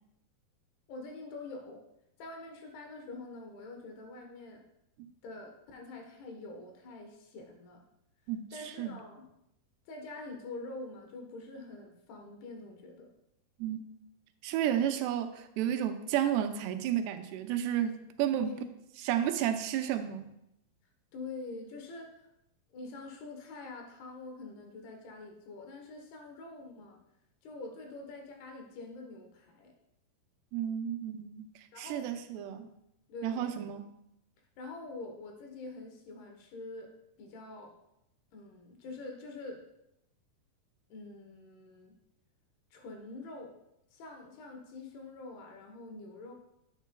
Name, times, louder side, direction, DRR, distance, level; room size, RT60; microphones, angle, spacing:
voice 1, 0.9-1.8 2.2-4.7 5.2-7.8 8.5-9.3 9.9-13.1 18.3-18.6 21.1-22.3 22.7-27.0 27.4-29.7 31.7-32.7 33.1-33.5 34.6-36.9 37.2-37.7 38.3-39.6 40.9-42.0 42.7-43.6 43.9-46.3, left 3 dB, 80° left, 3 dB, 3.1 m, -45 dB
voice 2, 8.3-9.0 13.6-13.8 14.4-18.5 19.0-20.3 30.5-31.5 31.8-32.7 33.2-33.9, right 10 dB, 90° right, 8 dB, 2.7 m, -32 dB
9.1 x 9.0 x 2.2 m, 0.83 s
omnidirectional pair, 4.6 m